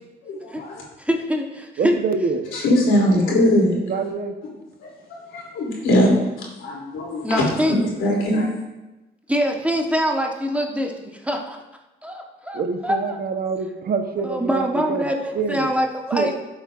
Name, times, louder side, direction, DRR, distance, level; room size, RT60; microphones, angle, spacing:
voice 1, 0.2-0.8 2.5-3.7 4.8-6.1 6.6-8.5, left 1 dB, 85° left, -3 dB, 2.8 m, -21 dB
voice 2, 1.1-2.0 7.2-7.7 9.3-11.6 12.0-13.1 14.2-16.3, equal, 5° right, 1 dB, 1.1 m, -24 dB
voice 3, 1.8-2.5 3.9-4.3 7.5-7.6 12.5-15.7 16.1-16.3, right 5 dB, 50° right, 6 dB, 0.9 m, -26 dB
12.0 x 7.5 x 2.5 m, 1.0 s
cardioid pair, 90°, 20 cm